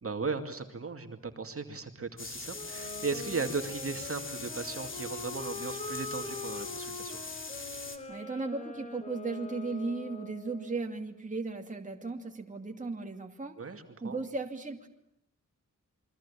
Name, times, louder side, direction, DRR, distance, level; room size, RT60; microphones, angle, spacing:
voice 1, 0.0-7.2 13.6-14.2, right 4 dB, 45° right, 6 dB, 2.5 m, -37 dB
sound 1, 2.2-8.0, left 3 dB, 40° left, 3.1 m, -41 dB
Wind instrument woodwind instrument, 2.5-10.8, left 3 dB, 20° left, 3.7 m, -43 dB
voice 2, 8.1-13.6 14.0-14.9, right 3 dB, 25° right, 3 dB, 2.4 m, -36 dB
28.0 x 24.0 x 8.6 m, 0.76 s
wide cardioid pair, 160°, 32 cm